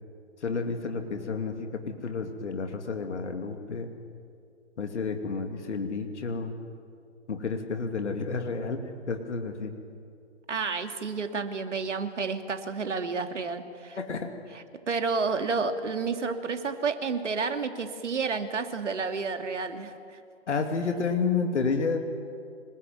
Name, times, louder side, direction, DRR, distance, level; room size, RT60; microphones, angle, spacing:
voice 1, 0.4-3.9 4.8-6.5 7.3-9.7 14.0-14.3 20.5-22.0, left 4 dB, 70° left, 5 dB, 2.9 m, -30 dB
voice 2, 10.5-14.0 14.9-19.9, right 4 dB, 75° right, 7 dB, 2.6 m, -30 dB
25.5 x 21.0 x 9.5 m, 2.3 s
figure-of-eight pair, 135°, 36 cm